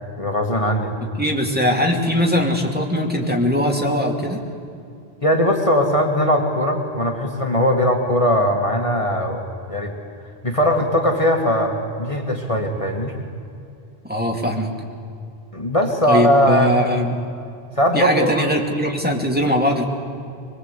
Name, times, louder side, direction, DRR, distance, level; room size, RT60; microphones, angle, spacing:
voice 1, 0.2-1.0 5.2-9.4 9.7-9.9 10.4-13.1 15.5-16.7 17.8-18.5, equal, 30° left, 2 dB, 2.0 m, -19 dB
voice 2, 1.2-4.4 14.0-14.7 16.0-17.2 17.9-19.8, equal, 10° right, -1 dB, 2.6 m, -20 dB
23.5 x 22.5 x 8.3 m, 2.5 s
omnidirectional pair, 1.1 m